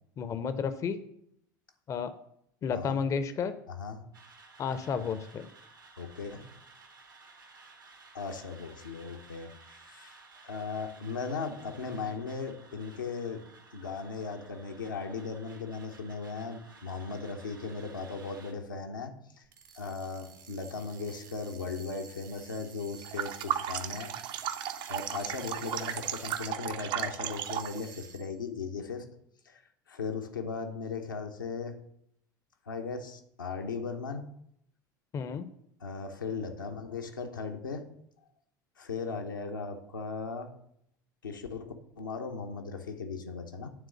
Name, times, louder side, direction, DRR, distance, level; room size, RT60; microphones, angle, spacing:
voice 1, 0.2-1.0 1.9-2.1 2.6-3.6 4.6-5.5 35.1-35.5, left 6 dB, 30° left, 12 dB, 0.6 m, -32 dB
voice 2, 3.7-4.1 6.0-6.5 8.1-10.2 10.4-13.5 13.7-19.4 19.8-24.4 24.9-29.1 29.4-29.6 29.9-31.8 32.7-34.3 35.8-37.9 38.8-40.6 41.2-43.7, left 4 dB, 80° left, 3 dB, 0.9 m, -37 dB
sound 1, 4.1-18.5, right 3 dB, 85° right, 1.5 m, -55 dB
sound 2, 19.4-26.8 27.2-28.4, right 6 dB, 65° right, 0.9 m, -51 dB
sound 3, 23.0-27.8, right 10 dB, 45° right, 0.6 m, -35 dB
9.3 x 3.8 x 6.7 m, 0.73 s
figure-of-eight pair, 70°, 11 cm